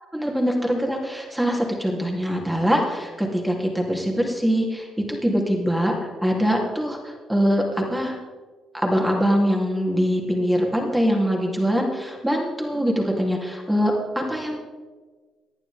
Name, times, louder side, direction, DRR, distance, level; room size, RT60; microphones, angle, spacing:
voice 1, 0.1-7.0 7.3-8.2 8.7-14.6, equal, 5° right, -1 dB, 3.3 m, -23 dB
19.0 x 11.0 x 3.7 m, 1.4 s
cardioid pair, 90°, 0 cm